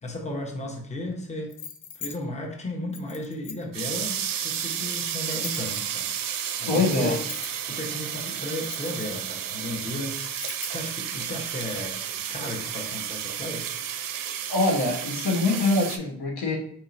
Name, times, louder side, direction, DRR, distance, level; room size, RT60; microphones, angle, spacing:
voice 1, 0.0-1.6 1.9-7.2 7.7-13.7, left 1 dB, 15° left, 2 dB, 0.8 m, -35 dB
sound 1, 1.5-2.2 2.9-3.8 4.5-6.1 6.9-7.7 8.4-9.5 10.1-10.9, left 7 dB, 50° left, 0.5 m, -41 dB
sound 2, 3.7-16.0, right 9 dB, 55° right, 0.5 m, -32 dB
voice 2, 6.7-7.2 14.5-16.6, left 2 dB, 70° left, 0 dB, 1.0 m, -24 dB
4.2 x 2.7 x 2.5 m, 0.66 s
supercardioid pair, 50°, 40 cm